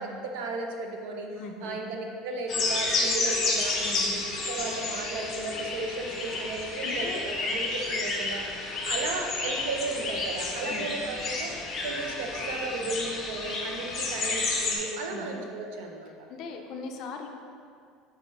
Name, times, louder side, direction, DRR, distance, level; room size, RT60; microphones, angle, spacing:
voice 1, 0.0-3.7 4.4-8.4 8.8-11.5 11.8-16.1, right 3 dB, 80° right, 2 dB, 0.8 m, -35 dB
voice 2, 1.4-1.8 3.8-4.1 6.8-7.3 10.6-10.9 15.1-15.3 16.3-17.3, left 4 dB, 45° left, 4 dB, 0.5 m, -39 dB
sound 1, 2.5-14.8, left 3 dB, 25° left, 0.9 m, -30 dB
5.0 x 4.8 x 4.2 m, 2.3 s
cardioid pair, 165°, 0 cm